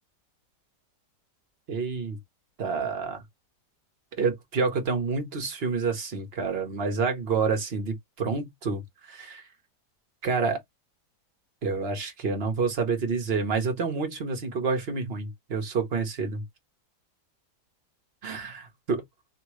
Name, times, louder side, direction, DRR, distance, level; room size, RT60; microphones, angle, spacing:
voice 1, 1.7-2.2 2.6-3.2 4.2-9.5 10.2-10.6 11.6-16.4 18.2-19.0, right 4 dB, 40° right, 1.3 m, -28 dB
3.0 x 2.9 x 3.0 m
omnidirectional pair, 1.8 m